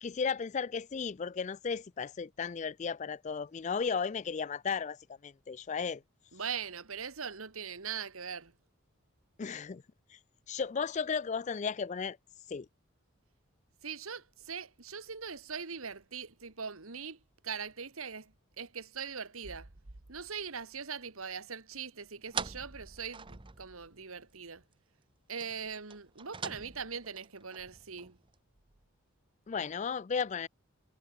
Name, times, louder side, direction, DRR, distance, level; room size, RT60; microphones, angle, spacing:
voice 1, 0.0-5.0 5.2-6.0 9.4-9.8 10.5-12.2 12.5-12.7 29.5-30.5, left 5 dB, 35° left, 0.3 m, -34 dB
voice 2, 6.3-8.5 13.8-19.7 20.1-24.6 25.3-28.2, right 6 dB, 80° right, 1.8 m, -41 dB
sound 1, 22.3-24.1 24.4-24.5 24.7-24.8 25.4-28.4, right 5 dB, 25° right, 0.8 m, -43 dB
head